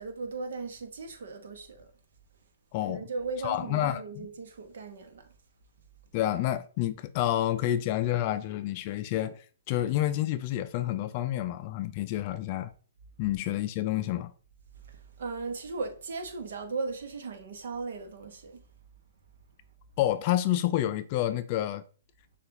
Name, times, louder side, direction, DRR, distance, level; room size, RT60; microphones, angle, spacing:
voice 1, 0.0-1.9 2.9-5.3 14.8-18.6, right 4 dB, 65° right, 1.0 m, -37 dB
voice 2, 2.7-3.0 3.4-4.3 6.1-12.7 13.2-14.3 20.0-21.8, left 13 dB, 40° left, 0.4 m, -29 dB
6.5 x 2.4 x 2.9 m
hypercardioid pair, 135°, 0 cm